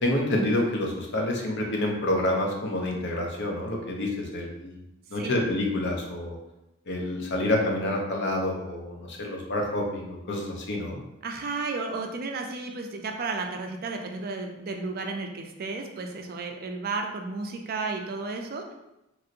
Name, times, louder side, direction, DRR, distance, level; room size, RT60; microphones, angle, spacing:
voice 1, 0.0-4.7 5.1-6.4 6.9-11.0, left 1 dB, 55° left, 0 dB, 0.6 m, -28 dB
voice 2, 11.2-18.7, right 3 dB, 45° right, 3 dB, 0.4 m, -33 dB
3.0 x 2.7 x 2.5 m, 0.91 s
head